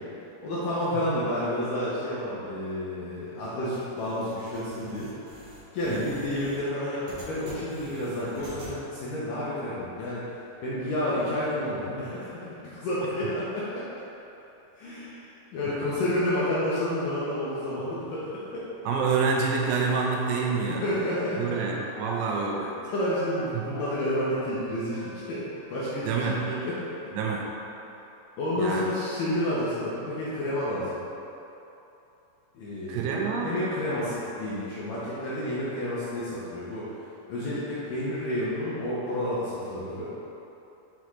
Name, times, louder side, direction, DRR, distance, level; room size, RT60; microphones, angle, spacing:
voice 1, 0.4-5.1 5.7-10.2 10.6-13.9 14.8-18.6 20.7-21.6 22.9-25.4 25.7-26.9 28.4-31.0 32.5-36.8 37.3-40.1, left 1 dB, 70° left, -9 dB, 2.2 m, -30 dB
sound 1, 3.7-8.7, right 1 dB, 55° right, 1.5 m, -46 dB
voice 2, 5.9-6.3 15.7-16.0 18.9-20.9 21.4-22.8 23.5-23.8 26.1-26.5 27.1-27.5 28.6-28.9 32.9-33.5, right 5 dB, 80° right, -2 dB, 2.8 m, -28 dB
Wind instrument woodwind instrument, 19.5-22.5 22.9-26.3, left 1 dB, 90° left, 1.8 m, -45 dB
7.7 x 4.9 x 3.1 m, 2.9 s
omnidirectional pair, 4.9 m